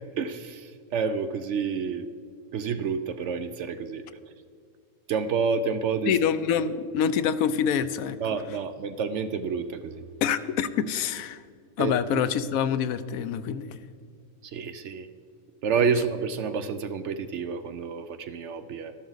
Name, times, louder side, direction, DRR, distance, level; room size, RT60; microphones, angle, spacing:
voice 1, 0.0-2.1 2.5-4.3 5.1-6.2 8.2-10.1 11.8-12.2 14.4-15.1 15.6-18.9, right 5 dB, 65° right, 10 dB, 0.7 m, -29 dB
voice 2, 6.1-8.2 10.2-11.4 11.8-13.9, left 8 dB, 75° left, 13 dB, 1.0 m, -26 dB
13.0 x 12.0 x 3.9 m, 2.2 s
omnidirectional pair, 1.5 m